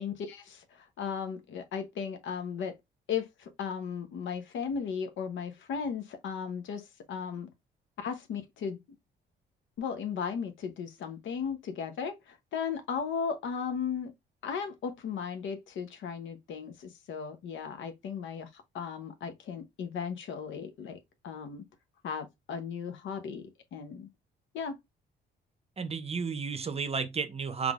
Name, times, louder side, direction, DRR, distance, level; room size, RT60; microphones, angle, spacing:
voice 1, 0.0-2.7 3.1-7.5 8.0-8.8 9.8-14.1 14.4-21.0 21.2-21.6 22.0-23.4 23.7-24.1 24.5-24.8, left 6 dB, 75° left, 0.8 m, -36 dB
voice 2, 25.8-27.7, right 5 dB, 30° right, 0.7 m, -32 dB
3.7 x 3.2 x 2.4 m
cardioid pair, 90°, 20 cm